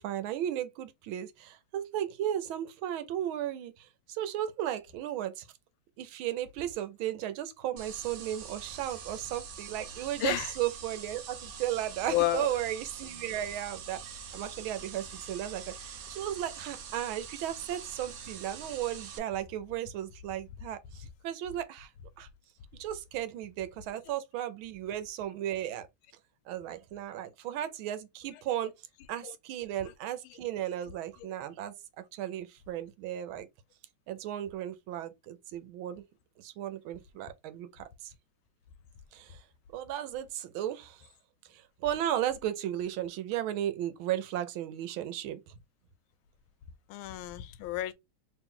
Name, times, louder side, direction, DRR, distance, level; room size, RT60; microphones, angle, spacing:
voice 1, 0.0-5.5 6.0-21.9 22.2-22.3 22.8-25.9 26.5-28.7 29.1-33.5 34.1-36.0 36.4-38.1 39.1-39.4 39.7-41.1 41.5-45.5, right 11 dB, 85° right, 1.5 m, -35 dB
sound 1, 7.8-19.2, right 6 dB, 65° right, 0.9 m, -44 dB
voice 2, 10.2-10.5 12.1-12.5 46.9-47.9, left 15 dB, 85° left, 1.4 m, -30 dB
3.1 x 3.1 x 3.6 m
omnidirectional pair, 2.2 m